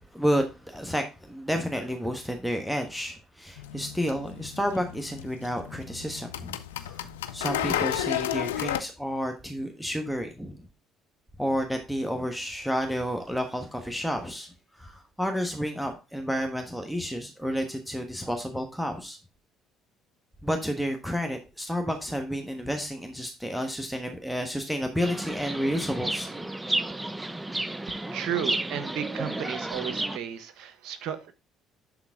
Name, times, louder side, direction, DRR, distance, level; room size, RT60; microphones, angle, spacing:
voice 1, 0.1-7.0 7.3-10.6 11.4-19.2 20.4-26.3, equal, ahead, 4 dB, 1.4 m, -30 dB
sound 1, 3.6-8.8, left 11 dB, 90° left, 0.4 m, -32 dB
Chirp tweet, 25.0-30.2, right 1 dB, 15° right, 0.7 m, -32 dB
voice 2, 27.9-31.3, right 9 dB, 65° right, 11 dB, 1.0 m, -34 dB
11.0 x 3.9 x 3.6 m, 0.30 s
hypercardioid pair, 60°, 0 cm